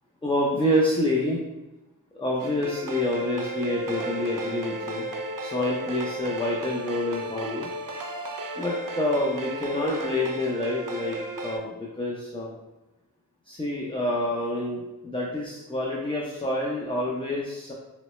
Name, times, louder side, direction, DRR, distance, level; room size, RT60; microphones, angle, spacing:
voice 1, 0.2-1.4 2.1-5.1 5.4-7.7 8.6-12.5 13.5-17.7, left 1 dB, 15° left, -3 dB, 0.5 m, -27 dB
sound 1, 2.4-11.6, right 1 dB, 65° right, 0.5 m, -34 dB
3.8 x 2.1 x 3.0 m, 1.0 s
wide cardioid pair, 40°, 35 cm